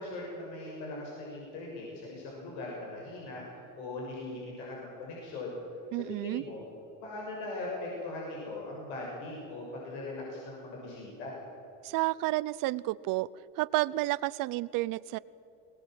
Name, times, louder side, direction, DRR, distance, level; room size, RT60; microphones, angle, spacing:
voice 1, 0.0-3.4 3.7-5.6 6.1-6.6 7.0-11.4, left 2 dB, 70° left, -3 dB, 6.8 m, -40 dB
voice 2, 5.9-6.4 11.8-13.3 13.6-15.2, right 19 dB, 55° right, 19 dB, 0.7 m, -30 dB
21.0 x 19.5 x 7.8 m, 2.9 s
supercardioid pair, 100°, 40 cm